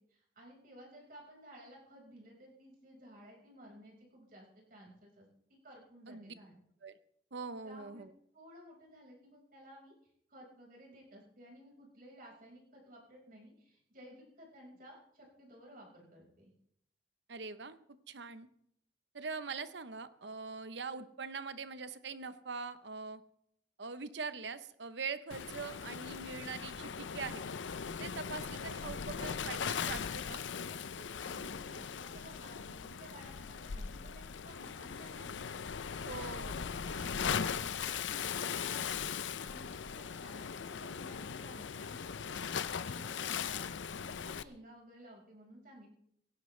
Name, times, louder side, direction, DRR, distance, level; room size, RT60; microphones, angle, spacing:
voice 1, 0.0-5.3 5.6-6.6 7.6-8.0 8.3-16.5 30.7-45.9, equal, 50° right, -1 dB, 5.2 m, -56 dB
voice 2, 7.3-8.1 17.3-17.8 18.1-18.5 19.1-23.2 23.8-27.4 28.0-30.4 36.0-36.5, right 4 dB, 70° right, 12 dB, 0.9 m, -42 dB
Waves surf, 25.3-44.4, left 6 dB, 85° left, 0.6 m, -39 dB
17.0 x 16.5 x 3.3 m, 0.71 s
head